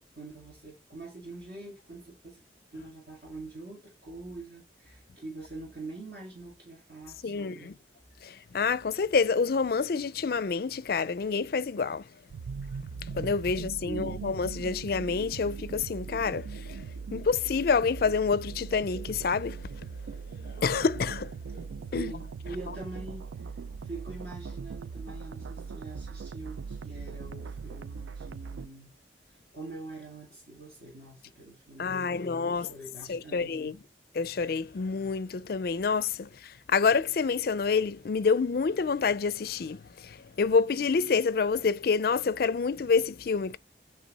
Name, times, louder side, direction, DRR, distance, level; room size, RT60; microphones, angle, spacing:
voice 1, 0.0-2.4 2.7-7.7 13.8-14.3 21.9-28.9 29.3-33.7, right 2 dB, 55° right, 2.1 m, -44 dB
voice 2, 7.2-7.7 8.2-12.1 13.0-16.8 17.1-19.9 20.6-21.7 21.9-22.1 31.8-32.7 33.1-33.8 34.2-43.6, left 5 dB, 55° left, 0.4 m, -28 dB
sound 1, 12.3-28.7, right 5 dB, 85° right, 0.4 m, -40 dB
8.3 x 3.3 x 4.1 m
head